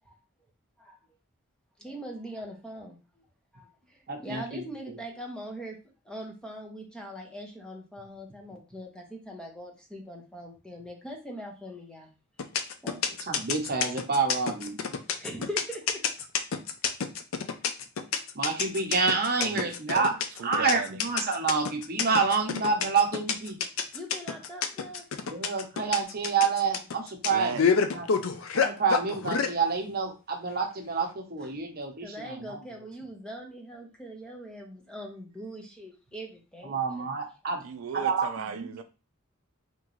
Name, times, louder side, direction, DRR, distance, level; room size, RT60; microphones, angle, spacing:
voice 1, 1.8-3.2 3.5-5.8 6.0-12.1 12.8-13.0 15.2-16.0 23.9-25.1 32.0-37.1, equal, 5° left, 0.7 m, -41 dB
voice 2, 4.1-4.6 13.3-14.8 18.3-20.1 20.4-23.6 25.2-28.1 28.5-32.6 36.6-37.6 37.9-38.3 38.5-38.7, right 5 dB, 45° right, 0.9 m, -28 dB
sound 1, 12.4-29.5, left 6 dB, 70° left, 0.5 m, -28 dB
voice 3, 19.4-21.0 27.3-27.6 37.6-38.8, right 5 dB, 75° right, 0.4 m, -37 dB
3.7 x 2.9 x 3.0 m
head